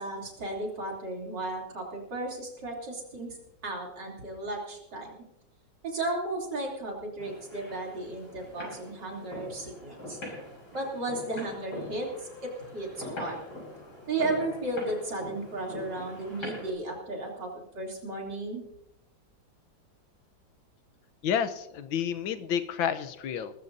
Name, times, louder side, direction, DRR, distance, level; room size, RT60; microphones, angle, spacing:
voice 1, 0.0-3.4 3.6-5.1 5.8-10.2 10.7-13.4 14.1-18.6, right 2 dB, 60° right, -1 dB, 3.8 m, -34 dB
sound 1, 7.2-16.7, left 1 dB, 55° left, 6.8 m, -43 dB
voice 2, 21.2-23.5, left 8 dB, 85° left, 11 dB, 1.6 m, -30 dB
20.0 x 14.5 x 2.7 m, 0.85 s
omnidirectional pair, 2.1 m